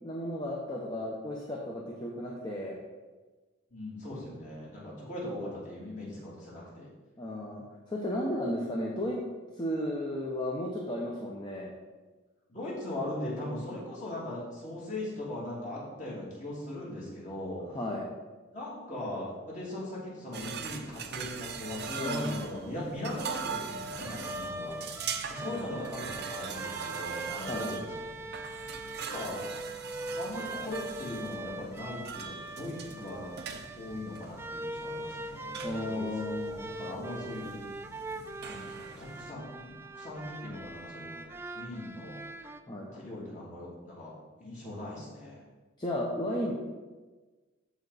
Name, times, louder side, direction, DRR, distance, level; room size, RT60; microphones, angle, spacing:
voice 1, 0.0-2.8 7.2-9.2 9.5-11.7 17.7-18.1 21.9-22.7 25.4-25.7 27.5-27.7 35.6-36.7 42.7-42.9 45.8-46.5, left 1 dB, 20° left, -3 dB, 1.0 m, -34 dB
voice 2, 3.7-6.9 12.5-17.6 18.5-24.8 25.3-27.9 28.1-28.6 29.0-29.4 30.2-33.4 33.7-36.0 36.4-37.6 38.5-41.3 41.5-42.2 42.9-44.1 44.4-45.4, left 1 dB, 35° left, -6 dB, 2.9 m, -39 dB
sound 1, 20.3-39.3, right 6 dB, 55° right, 0.7 m, -42 dB
sound 2, 24.0-42.6, right 2 dB, 10° right, 0.3 m, -41 dB
13.5 x 4.8 x 4.2 m, 1.3 s
head